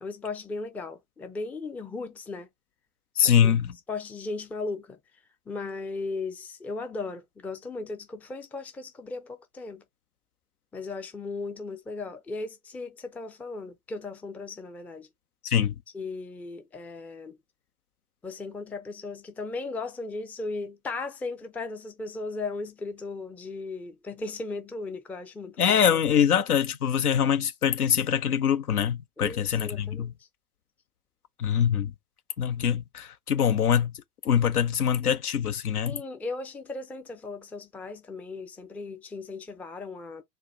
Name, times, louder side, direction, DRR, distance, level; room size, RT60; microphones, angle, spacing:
voice 1, 0.0-2.5 3.2-3.5 3.9-5.0 5.5-9.8 10.7-15.1 15.9-17.4 18.2-25.7 29.2-30.1 35.8-40.2, left 3 dB, 5° left, 0.4 m, -36 dB
voice 2, 3.2-3.8 15.4-15.7 25.6-30.1 31.4-31.9 32.4-33.9 34.2-36.0, left 8 dB, 80° left, 0.7 m, -24 dB
4.3 x 2.1 x 3.9 m
figure-of-eight pair, 80°, 45 cm